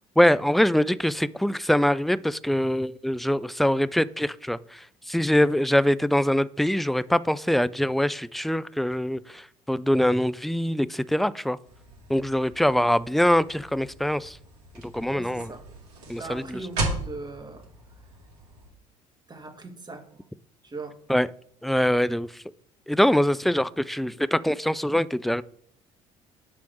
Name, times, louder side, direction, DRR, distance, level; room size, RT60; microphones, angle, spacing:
voice 1, 0.2-11.6 12.1-14.4 14.8-15.5 16.1-16.6 21.1-21.3 21.6-22.4 22.9-25.4, equal, ahead, 0.3 m, -23 dB
sound 1, 11.6-18.7, right 2 dB, 75° right, 2.3 m, -37 dB
voice 2, 15.1-15.6 16.2-17.7 19.3-20.3 20.6-21.0, right 3 dB, 25° right, 1.8 m, -39 dB
7.6 x 3.4 x 6.2 m
hypercardioid pair, 55°, 18 cm